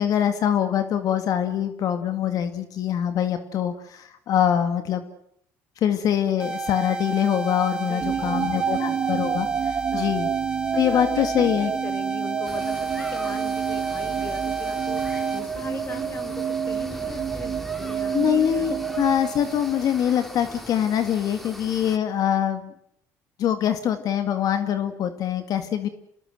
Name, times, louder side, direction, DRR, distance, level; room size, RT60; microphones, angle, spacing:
voice 1, 0.0-5.0 5.8-10.3 10.8-11.7 18.1-22.7 23.4-25.9, left 9 dB, 60° left, 9 dB, 2.2 m, -24 dB
sound 1, 6.4-15.4, right 3 dB, 15° right, 1.5 m, -31 dB
voice 2, 7.8-9.0 9.9-10.2 10.7-18.2 18.5-18.9, left 4 dB, 35° left, 11 dB, 4.6 m, -40 dB
sound 2, 8.0-20.1, right 8 dB, 40° right, 1.2 m, -29 dB
sound 3, 12.4-22.0, equal, ahead, 3.4 m, -41 dB
27.5 x 19.5 x 7.8 m, 0.71 s
supercardioid pair, 90°, 7 cm